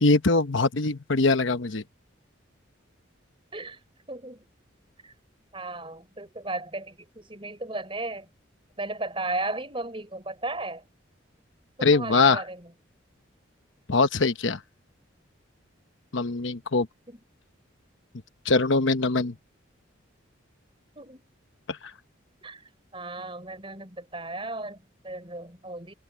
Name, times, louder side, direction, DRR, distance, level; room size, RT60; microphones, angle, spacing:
voice 1, 0.0-1.8 11.8-12.4 13.9-14.6 16.1-16.9 18.4-19.3 21.7-21.8, left 3 dB, 70° left, 1.0 m, -22 dB
voice 2, 4.1-4.5 5.0-5.1 5.5-8.3 8.8-10.8 11.8-12.7 17.1-17.2 21.0-21.2 22.4-22.6 22.9-25.9, right 2 dB, 25° right, 4.6 m, -35 dB
head